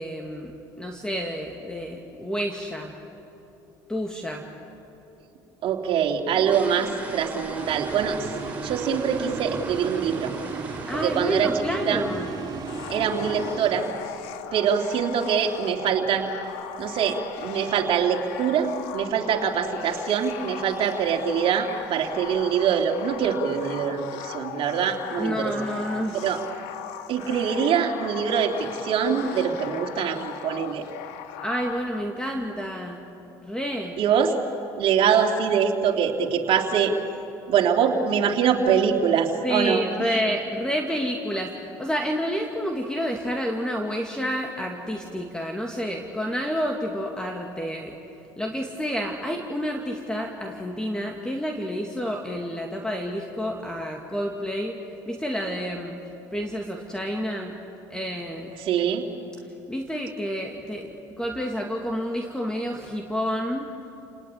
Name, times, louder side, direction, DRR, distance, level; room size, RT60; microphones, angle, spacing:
voice 1, 0.0-2.9 3.9-4.4 10.9-12.3 25.2-26.3 31.4-33.0 33.4-34.0 39.4-47.9 48.4-54.8 55.1-55.9 56.3-57.5 57.9-58.5 59.7-63.7, equal, 5° left, 2 dB, 2.4 m, -29 dB
voice 2, 5.6-8.2 8.6-10.3 11.0-12.1 12.9-13.9 14.5-16.3 16.8-25.5 26.1-26.4 27.1-30.8 34.0-34.3 34.8-36.9 37.5-39.8 58.6-59.0, right 7 dB, 55° right, 2 dB, 3.2 m, -24 dB
sound 1, 5.9-11.9 12.1-12.4 12.8-12.9 13.2-13.4 13.8-14.0 14.2-14.3 14.9-15.0 15.3-15.4 15.9-16.3 16.5-16.6 17.0-17.2 17.6-17.7 18.1-18.2 18.8-19.1 19.4-19.7 20.1-20.2 20.6-20.7 21.5-21.6 22.0-22.5 23.0-23.1, right 2 dB, 15° right, 4.7 m, -39 dB
sound 2, 7.6-14.2, right 5 dB, 40° right, 5.4 m, -35 dB
sound 3, 12.7-31.8, left 9 dB, 80° left, 1.6 m, -38 dB
29.5 x 19.0 x 9.7 m, 2.9 s
supercardioid pair, 85°, 11 cm